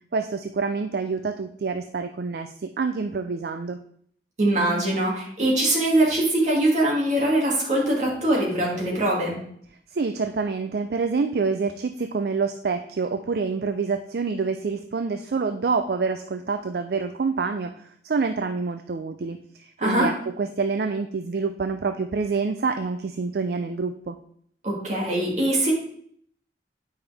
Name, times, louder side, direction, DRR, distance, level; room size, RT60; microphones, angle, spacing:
voice 1, 0.1-3.8 9.9-24.2, right 4 dB, 60° right, 7 dB, 0.4 m, -27 dB
voice 2, 4.4-9.4 19.8-20.1 24.6-25.7, right 1 dB, 40° right, -3 dB, 2.4 m, -22 dB
8.8 x 5.5 x 3.4 m, 0.63 s
head